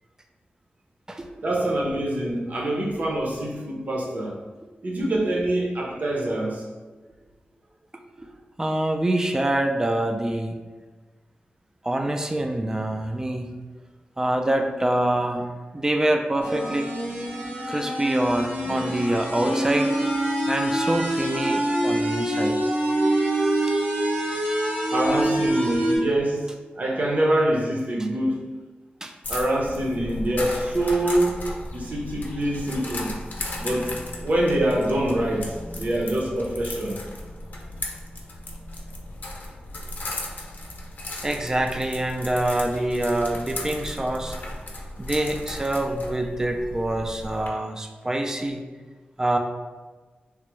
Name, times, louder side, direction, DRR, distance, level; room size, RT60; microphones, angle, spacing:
voice 1, 1.4-4.3 4.8-6.6 18.6-19.7 24.9-26.5 26.8-28.5 29.3-31.4 31.7-33.1 33.6-37.0, right 1 dB, 50° right, -2 dB, 0.7 m, -25 dB
voice 2, 8.6-10.6 11.8-13.5 14.2-15.5 15.7-16.9 17.7-19.9 20.5-22.7 29.0-29.1 31.1-31.2 41.2-44.4 45.0-48.6 49.2-49.4, right 1 dB, 15° right, 4 dB, 0.3 m, -25 dB
sound 1, 16.4-26.0, right 1 dB, 70° right, 1.1 m, -25 dB
sound 2, 29.2-47.5, left 1 dB, 60° left, 0.5 m, -36 dB
3.4 x 2.1 x 3.0 m, 1.4 s
wide cardioid pair, 80°, 3 cm